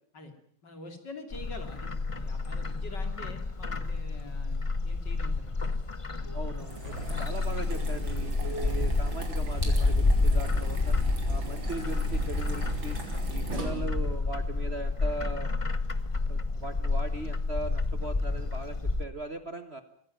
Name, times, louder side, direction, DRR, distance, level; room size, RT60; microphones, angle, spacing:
voice 1, 0.6-5.6 6.2-6.3, left 2 dB, 60° left, 7 dB, 3.4 m, -46 dB
Bird, 1.3-19.0, left 3 dB, 30° left, 0.5 m, -29 dB
voice 2, 6.3-11.0 11.3-13.0 13.3-15.6 16.3-19.8, right 2 dB, 40° right, 10 dB, 1.2 m, -39 dB
sound 1, 6.5-14.1, right 3 dB, 70° right, 4.4 m, -39 dB
24.0 x 15.0 x 9.1 m, 0.64 s
omnidirectional pair, 2.2 m